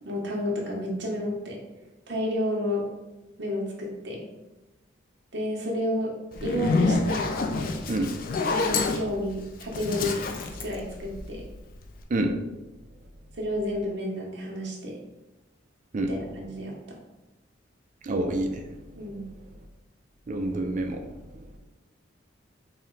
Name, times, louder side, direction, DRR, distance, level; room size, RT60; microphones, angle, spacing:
voice 1, 0.0-1.6 2.1-2.8 3.4-4.3 5.3-6.1 6.4-7.3 8.5-10.4 10.6-11.4 13.3-15.0 16.0-17.0 18.9-19.2, left 1 dB, 60° right, -2 dB, 0.9 m, -31 dB
Zipper (clothing), 6.3-11.6, left 3 dB, 45° left, 0.3 m, -27 dB
voice 2, 18.0-18.6 20.3-21.0, right 2 dB, 40° right, 5 dB, 0.4 m, -27 dB
4.2 x 2.1 x 3.8 m, 1.0 s
head